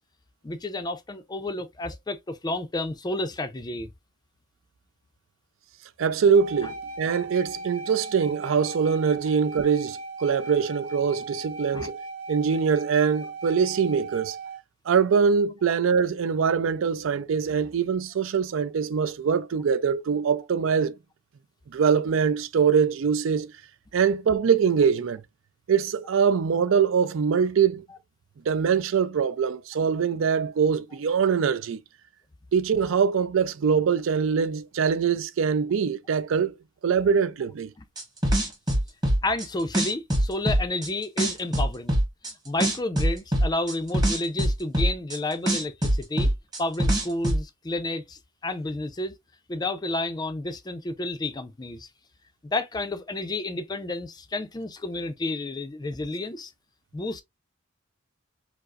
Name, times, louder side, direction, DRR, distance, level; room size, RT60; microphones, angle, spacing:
voice 1, 0.4-3.9 6.6-6.7 11.7-11.9 37.8-37.9 39.2-42.0 42.2-46.3 46.6-49.1 49.5-51.9 52.4-56.5 56.9-57.2, left 2 dB, 20° left, 0.4 m, -31 dB
voice 2, 6.0-12.0 12.3-14.4 14.9-21.0 21.7-23.5 23.9-25.2 25.7-27.8 28.5-31.8 32.5-36.5 36.8-37.7, right 6 dB, 65° right, 0.4 m, -23 dB
sound 1, 6.3-14.6, right 3 dB, 80° right, 0.9 m, -38 dB
sound 2, 38.0-39.4 39.7-40.9 41.2-42.3 42.6-45.2 45.5-47.4, right 1 dB, 20° right, 1.2 m, -22 dB
4.6 x 2.0 x 2.4 m
head